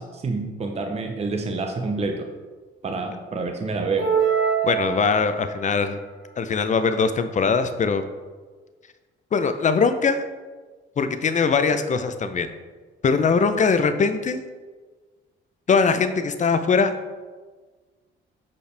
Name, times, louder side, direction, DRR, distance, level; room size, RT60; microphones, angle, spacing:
voice 1, 0.0-2.3 2.8-4.1, right 3 dB, 30° right, 4 dB, 0.7 m, -27 dB
sound 1, 4.0-5.7, right 7 dB, 60° right, 1.6 m, -23 dB
voice 2, 4.6-6.0 6.4-8.0 9.3-10.2 11.0-12.5 13.0-14.4 15.7-16.9, left 5 dB, 40° left, 10 dB, 0.5 m, -21 dB
6.7 x 5.3 x 3.3 m, 1.4 s
cardioid pair, 90°, 20 cm